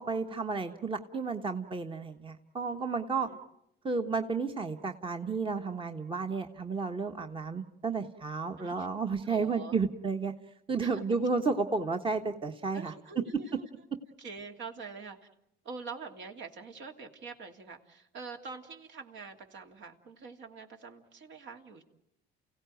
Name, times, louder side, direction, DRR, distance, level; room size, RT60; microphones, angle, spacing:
voice 1, 0.0-3.3 3.8-10.3 10.7-12.9, right 4 dB, 25° right, 6 dB, 1.3 m, -32 dB
voice 2, 9.2-9.8 10.8-11.0 12.7-13.7 14.2-15.3 15.6-21.8, right 4 dB, 65° right, 4 dB, 2.8 m, -45 dB
29.5 x 16.5 x 9.2 m, 0.83 s
supercardioid pair, 85°, 21 cm